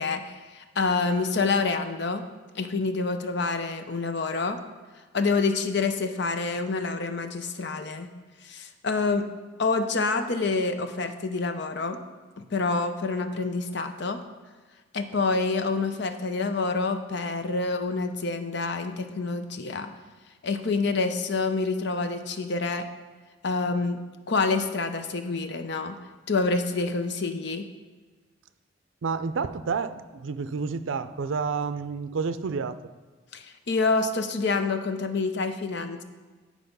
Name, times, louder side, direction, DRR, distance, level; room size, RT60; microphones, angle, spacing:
voice 1, 0.0-2.2 2.5-4.6 5.1-8.1 8.4-9.3 9.6-12.0 12.4-14.2 14.9-19.9 20.4-22.9 23.4-24.0 24.3-26.0 26.3-27.7 33.3-36.0, left 3 dB, 60° left, 8 dB, 0.7 m, -27 dB
voice 2, 29.0-32.8, right 5 dB, 75° right, 13 dB, 0.5 m, -30 dB
10.0 x 4.8 x 5.3 m, 1.4 s
head